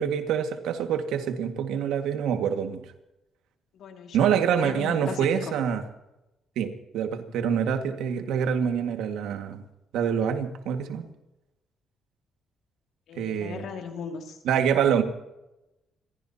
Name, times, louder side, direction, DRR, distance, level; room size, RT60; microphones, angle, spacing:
voice 1, 0.0-2.8 4.1-5.8 6.6-9.6 9.9-11.1 13.2-13.6 14.5-15.0, right 8 dB, 85° right, 6 dB, 1.9 m, -26 dB
voice 2, 3.7-5.5 13.1-14.4, left 6 dB, 75° left, 3 dB, 2.6 m, -38 dB
27.5 x 15.5 x 2.9 m, 0.93 s
cardioid pair, 90°, 0 cm